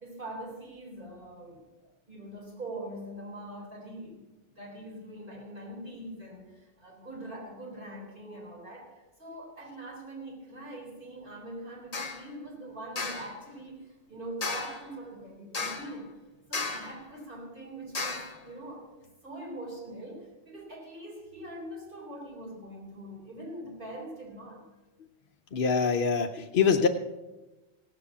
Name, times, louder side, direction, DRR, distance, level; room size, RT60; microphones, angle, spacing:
voice 1, 0.0-4.2 4.6-16.2 16.5-19.0 19.2-24.6, right 1 dB, 50° right, -3 dB, 4.2 m, -43 dB
sound 1, 11.9-12.2 13.0-13.3 14.4-14.9 15.5-16.0 16.5-17.0 17.9-18.4, left 3 dB, 35° left, 1.4 m, -34 dB
voice 2, 25.5-26.9, left 6 dB, 55° left, 3 dB, 0.8 m, -24 dB
17.0 x 7.8 x 7.0 m, 1.1 s
omnidirectional pair, 1.2 m